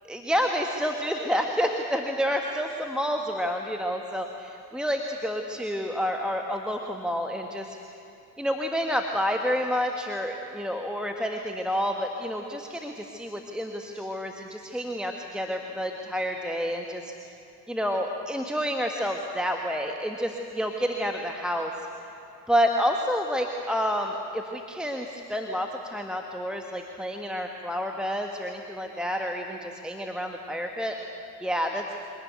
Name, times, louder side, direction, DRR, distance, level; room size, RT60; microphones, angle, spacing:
voice 1, 0.0-7.7 8.4-17.0 17.7-21.7 22.5-31.0 31.4-31.8, equal, ahead, 3 dB, 1.6 m, -29 dB
24.5 x 18.0 x 8.3 m, 2.8 s
figure-of-eight pair, 50°, 47 cm